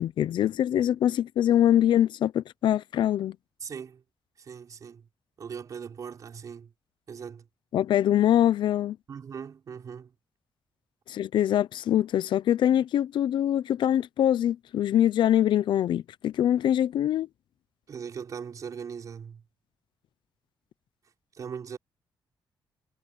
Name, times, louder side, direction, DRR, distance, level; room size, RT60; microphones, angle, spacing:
voice 1, 0.0-3.4 7.7-9.0 11.1-17.3, left 11 dB, 65° left, 0.6 m, -24 dB
voice 2, 3.6-4.0 4.4-5.1 5.4-6.7 7.1-7.5 9.1-10.1 17.9-19.4 21.3-21.8, right 7 dB, 40° right, 5.8 m, -39 dB
wide cardioid pair, 180°, 9 cm